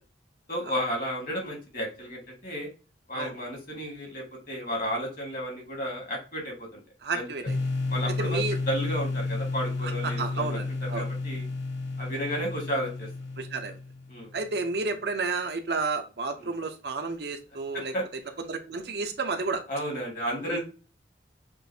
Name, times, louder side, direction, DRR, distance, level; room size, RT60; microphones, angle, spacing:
voice 1, 0.5-2.7 3.1-6.8 7.1-7.2 7.9-8.4 8.7-11.4 12.0-13.1 14.1-14.3 16.4-16.5 17.7-18.0 19.7-20.6, equal, 45° left, 0 dB, 1.7 m, -33 dB
voice 2, 7.0-7.6 8.2-8.6 10.2-11.0 13.4-13.8 14.3-17.9 18.5-19.6 20.5-20.6, right 3 dB, 60° right, 5 dB, 0.6 m, -31 dB
sound 1, 7.5-14.3, left 3 dB, 70° left, 0.9 m, -31 dB
6.0 x 2.6 x 2.7 m, 0.33 s
head